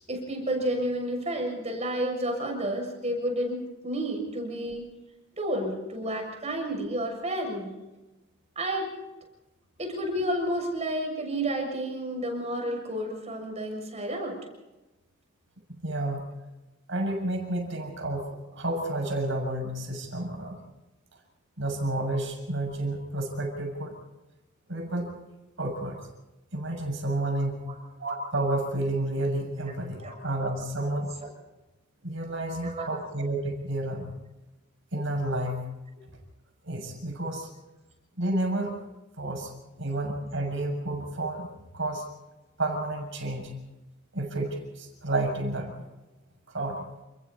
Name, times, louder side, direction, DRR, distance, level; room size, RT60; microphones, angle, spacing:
voice 1, 0.0-4.9 5.4-7.8 8.6-8.9 9.8-14.4 27.6-27.8 29.6-29.7 30.0-30.2 32.6-32.8, right 1 dB, 30° right, 2 dB, 6.9 m, -31 dB
voice 2, 15.8-16.2 16.9-20.6 21.6-24.0 24.7-25.1 25.6-26.0 26.5-27.6 28.0-31.1 32.0-34.1 34.9-35.7 36.6-37.5 38.2-38.7 39.2-39.5 39.8-41.5 41.7-42.1 42.6-43.5 44.1-45.7 46.5-46.8, right 1 dB, 60° right, 2 dB, 6.8 m, -30 dB
29.5 x 21.5 x 4.2 m, 1.0 s
head